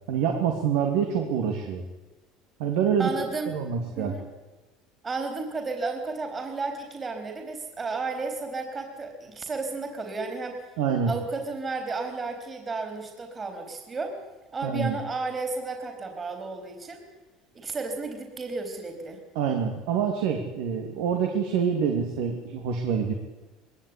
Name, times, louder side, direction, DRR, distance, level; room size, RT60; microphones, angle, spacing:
voice 1, 0.1-1.8 2.6-3.1 3.5-4.2 10.8-11.1 14.6-15.0 19.3-23.1, right 7 dB, 80° right, 3 dB, 2.9 m, -26 dB
voice 2, 3.0-3.5 3.9-4.2 5.0-10.6 11.0-14.2 14.5-17.0 17.5-19.2, right 3 dB, 25° right, 5 dB, 4.0 m, -33 dB
21.0 x 17.5 x 10.0 m, 1.1 s
supercardioid pair, 125°, 0 cm